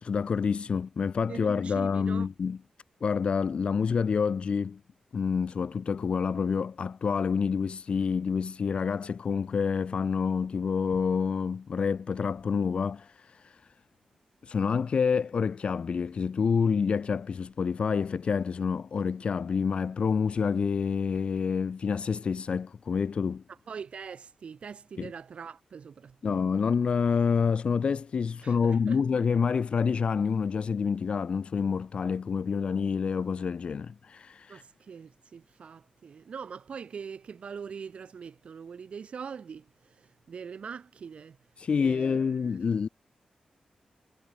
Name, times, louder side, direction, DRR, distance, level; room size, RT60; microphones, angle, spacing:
voice 1, 0.0-2.6 3.0-4.8 5.1-13.6 14.4-23.4 25.0-25.1 26.2-34.6 41.6-42.9, left 6 dB, 50° left, 1.6 m, -28 dB
voice 2, 1.3-2.3 23.5-26.4 28.4-29.0 34.5-41.4 41.8-42.6, right 6 dB, 55° right, 1.5 m, -43 dB
wide cardioid pair, 170°, 2 cm